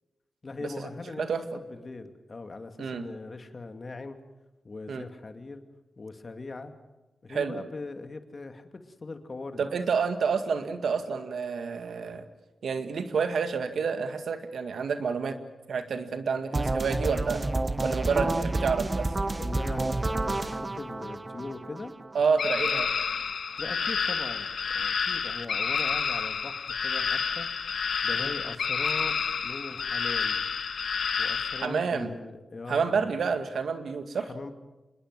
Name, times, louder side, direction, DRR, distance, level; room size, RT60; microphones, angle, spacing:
voice 1, 0.4-1.3 1.5-4.2 4.6-5.6 6.0-6.7 7.2-9.7 18.0-18.5 19.4-21.9 23.6-24.5 24.7-27.5 28.0-30.4 31.2-33.3 34.2-34.5, left 3 dB, 45° left, 7 dB, 2.5 m, -40 dB
voice 2, 1.2-1.6 2.8-3.0 4.9-5.1 7.3-7.6 9.6-12.2 12.6-15.4 15.7-17.4 17.8-19.1 22.1-22.9 28.2-28.3 31.6-32.1 32.7-34.3, right 5 dB, 80° right, 8 dB, 2.1 m, -29 dB
sound 1, 16.5-22.5, right 2 dB, 30° right, 1.2 m, -30 dB
sound 2, 22.4-31.7, left 6 dB, 75° left, 1.6 m, -29 dB
26.5 x 21.0 x 7.7 m, 1.1 s
cardioid pair, 50°, 0 cm